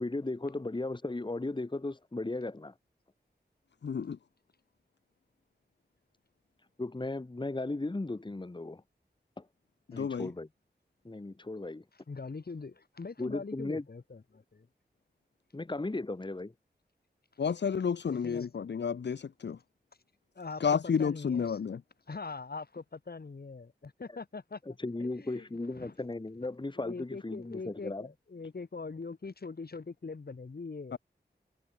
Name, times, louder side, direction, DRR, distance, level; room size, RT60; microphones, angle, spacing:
voice 1, 0.0-2.7 6.8-8.8 9.4-9.5 9.9-10.5 11.0-11.8 13.2-13.8 15.5-16.5 24.7-28.1, left 2 dB, 25° left, 1.8 m, -36 dB
voice 2, 3.8-4.2 9.9-10.3 17.4-19.6 20.6-21.8 30.9-31.0, left 6 dB, 75° left, 0.9 m, -31 dB
voice 3, 12.1-14.7 18.0-18.5 20.3-21.6 22.1-24.6 25.0-25.5 25.8-25.9 26.8-31.0, left 4 dB, 60° left, 4.4 m, -42 dB
wide cardioid pair, 75°, 18 cm